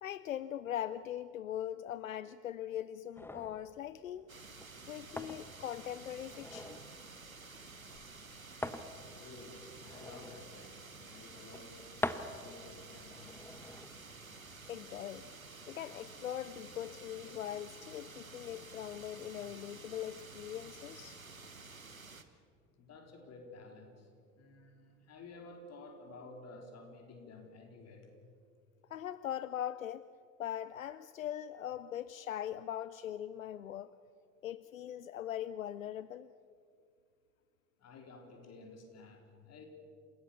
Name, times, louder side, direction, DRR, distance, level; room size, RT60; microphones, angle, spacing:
voice 1, 0.0-4.3 4.9-6.8 14.7-15.3 15.7-21.2 28.9-30.1 30.4-33.9 34.4-36.3, left 11 dB, 80° left, 16 dB, 0.5 m, -41 dB
sound 1, 3.1-15.0, left 1 dB, 5° left, 1.1 m, -46 dB
sound 2, 4.3-22.2, right 3 dB, 90° right, 1.1 m, -52 dB
voice 2, 9.1-13.7 22.7-28.1 37.8-39.7, left 3 dB, 40° left, 3 dB, 4.1 m, -53 dB
28.5 x 16.0 x 7.1 m, 2.3 s
figure-of-eight pair, 65°, 40 cm